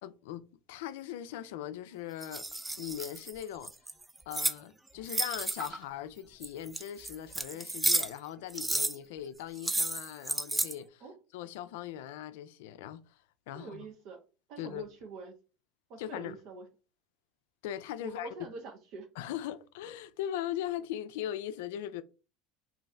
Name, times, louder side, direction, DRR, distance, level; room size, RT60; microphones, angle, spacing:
voice 1, 0.0-2.4 2.8-3.7 4.3-11.0 11.3-13.8 14.6-14.9 16.0-16.3 17.6-18.3 19.2-22.0, left 11 dB, 80° left, 0.3 m, -40 dB
sound 1, 2.2-4.6 5.1-5.8 6.4-8.2 8.5-9.0 9.6-10.7, right 2 dB, 15° right, 0.3 m, -32 dB
voice 2, 13.5-14.2 14.5-15.4 15.9-16.7 18.0-19.1, right 3 dB, 60° right, 0.5 m, -45 dB
2.5 x 2.5 x 3.1 m
hypercardioid pair, 95°, 0 cm